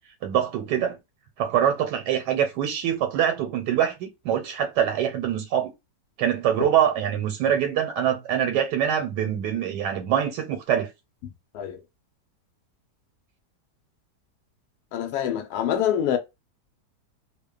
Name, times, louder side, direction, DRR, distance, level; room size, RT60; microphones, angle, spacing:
voice 1, 0.2-1.0 1.4-5.7 6.2-10.9, right 9 dB, 80° right, 1.2 m, -24 dB
voice 2, 14.9-16.2, left 10 dB, 70° left, 1.1 m, -25 dB
2.8 x 2.2 x 2.3 m
omnidirectional pair, 1.8 m